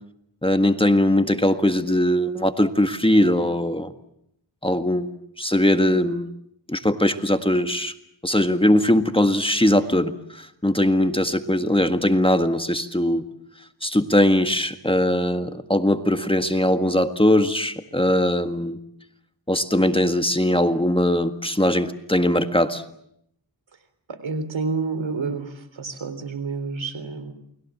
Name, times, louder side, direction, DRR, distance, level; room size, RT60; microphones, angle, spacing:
voice 1, 0.4-3.9 4.6-6.3 6.7-7.9 8.2-13.2 13.8-18.8 19.5-22.8, left 1 dB, 10° left, 8 dB, 1.7 m, -20 dB
voice 2, 24.1-27.3, right 4 dB, 75° right, 11 dB, 3.7 m, -29 dB
29.0 x 21.5 x 7.5 m, 0.74 s
cardioid pair, 60°, 46 cm